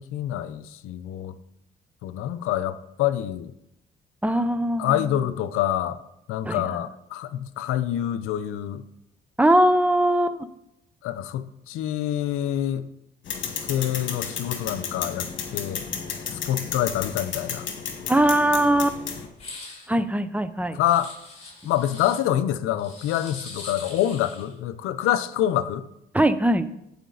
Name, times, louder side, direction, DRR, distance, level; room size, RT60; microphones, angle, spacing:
voice 1, 0.0-1.3 2.0-3.5 4.8-6.0 6.3-8.8 11.0-12.9 13.7-15.3 15.5-15.8 16.5-17.7 20.7-21.1 21.6-25.9, left 11 dB, 80° left, 13 dB, 0.6 m, -26 dB
voice 2, 4.2-5.2 6.4-6.8 9.4-10.5 18.1-19.0 19.9-20.8 26.1-26.7, right 1 dB, 5° right, 12 dB, 0.7 m, -21 dB
sound 1, 13.3-19.3, left 7 dB, 65° left, 1.6 m, -33 dB
sound 2, 19.3-19.9 20.9-22.2 22.8-24.5, left 3 dB, 30° left, 4.1 m, -42 dB
15.0 x 5.1 x 4.0 m, 0.81 s
supercardioid pair, 75°, 21 cm